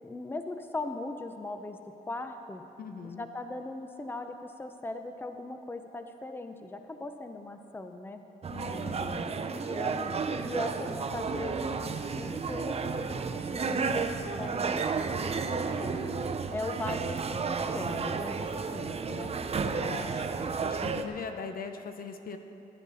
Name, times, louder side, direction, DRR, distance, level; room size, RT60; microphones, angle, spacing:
voice 1, 0.0-2.6 3.2-8.2 8.6-9.3 9.6-12.8 13.1-16.1 16.5-19.3, left 2 dB, 15° left, 6 dB, 0.7 m, -39 dB
voice 2, 2.8-3.3 8.5-9.3 15.6-16.2 19.7-22.4, left 5 dB, 65° left, 7 dB, 0.9 m, -41 dB
sound 1, 8.4-21.0, right 5 dB, 40° right, 0.6 m, -32 dB
14.0 x 11.0 x 4.2 m, 2.9 s
cardioid pair, 100°, 16 cm